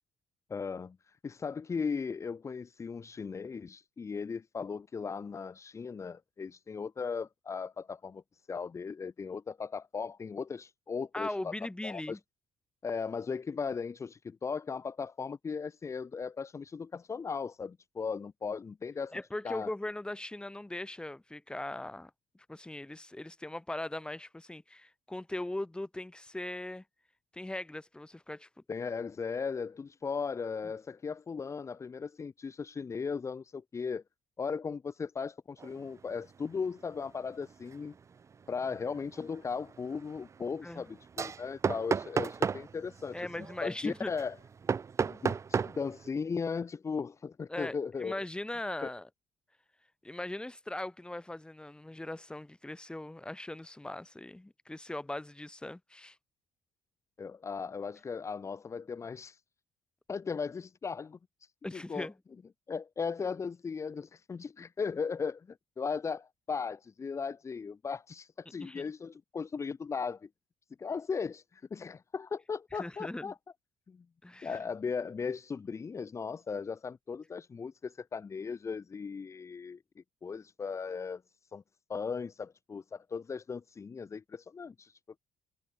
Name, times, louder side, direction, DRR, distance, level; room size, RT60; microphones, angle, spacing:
voice 1, 0.5-8.2 8.5-11.5 11.8-12.2 12.8-19.2 19.4-19.7 28.7-34.0 34.4-37.9 38.5-44.4 45.1-48.2 48.8-48.9 57.2-59.4 60.1-62.1 62.7-70.3 70.8-73.3 73.9-74.0 74.4-81.2 81.5-81.6 81.9-85.2, left 5 dB, 30° left, 1.4 m, -37 dB
voice 2, 11.1-12.2 19.1-22.1 22.5-26.8 27.3-28.5 40.6-40.9 42.2-42.3 43.1-44.1 47.5-49.1 50.0-56.2 61.6-62.1 68.6-68.8 72.7-73.3 74.2-74.6, left 1 dB, 10° left, 6.3 m, -39 dB
sound 1, 35.6-35.9 36.2-36.5 36.9-46.1, right 6 dB, 35° right, 0.6 m, -35 dB
cardioid pair, 85°, 9 cm